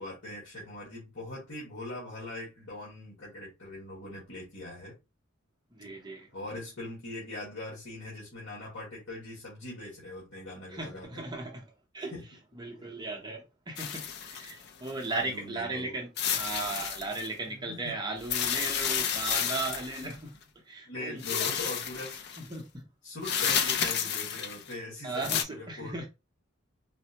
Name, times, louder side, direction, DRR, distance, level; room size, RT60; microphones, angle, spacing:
voice 1, 0.0-4.9 6.3-11.2 12.1-12.2 15.1-16.0 17.4-18.0 20.0-20.1 20.9-22.5 23.0-26.0, left 2 dB, 75° left, 1.6 m, -41 dB
voice 2, 5.7-6.3 10.7-11.7 11.9-12.1 12.6-20.3 20.7-21.5 22.4-22.8 25.0-26.1, right 3 dB, 20° right, 0.6 m, -37 dB
sound 1, 13.8-15.1 16.2-17.3 18.2-20.1 21.2-22.4 23.2-24.7 25.1-25.4, left 8 dB, 50° left, 0.4 m, -31 dB
4.2 x 2.0 x 2.7 m
head